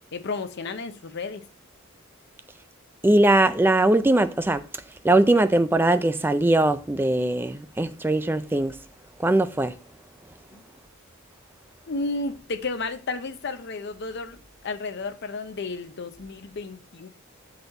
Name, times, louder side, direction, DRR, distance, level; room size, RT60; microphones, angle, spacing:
voice 1, 0.1-1.5 10.5-10.6 11.9-17.1, left 3 dB, 55° left, 0.6 m, -32 dB
voice 2, 3.0-4.7 5.0-8.8 9.2-9.7, right 2 dB, 10° right, 0.3 m, -20 dB
7.0 x 4.1 x 3.9 m
head